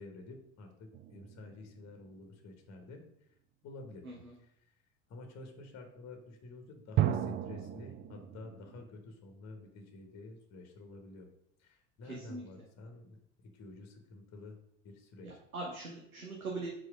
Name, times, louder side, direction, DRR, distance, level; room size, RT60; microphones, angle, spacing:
voice 1, 0.0-3.0 3.6-4.1 4.4-4.7 5.1-11.3 11.6-14.6 14.8-15.3, left 2 dB, 40° left, 5 dB, 1.2 m, -50 dB
sound 1, 0.9-2.3 7.0-8.8, right 11 dB, 30° right, 0.4 m, -35 dB
voice 2, 15.2-16.7, right 3 dB, 85° right, -2 dB, 1.0 m, -41 dB
4.8 x 4.2 x 5.8 m, 0.74 s
figure-of-eight pair, 60°, 41 cm